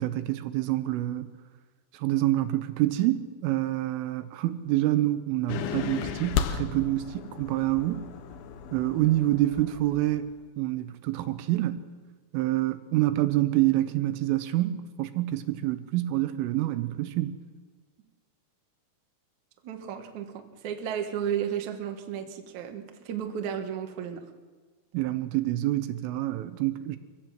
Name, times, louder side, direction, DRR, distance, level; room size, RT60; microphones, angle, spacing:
voice 1, 0.0-1.3 1.9-8.1 8.7-11.9 12.3-17.4 24.9-27.0, right 15 dB, 80° right, 3.4 m, -27 dB
sound 1, 5.5-10.3, left 8 dB, 85° left, 2.1 m, -34 dB
voice 2, 19.6-24.2, right 9 dB, 65° right, 1.9 m, -33 dB
25.5 x 16.0 x 7.6 m
omnidirectional pair, 5.9 m